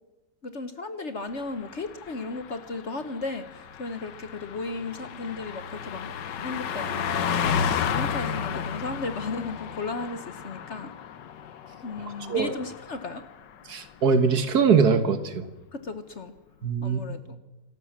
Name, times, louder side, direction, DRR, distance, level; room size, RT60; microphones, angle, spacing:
voice 1, 0.4-6.1 6.4-10.9 11.8-13.2 15.7-16.3 16.8-17.4, left 3 dB, 45° left, 10 dB, 1.3 m, -35 dB
Car passing by, 1.4-13.3 13.6-13.9, left 7 dB, 80° left, 1.7 m, -33 dB
voice 2, 13.7-15.4 16.6-17.0, right 5 dB, 60° right, 10 dB, 1.8 m, -22 dB
27.0 x 13.0 x 7.4 m, 1.0 s
omnidirectional pair, 1.9 m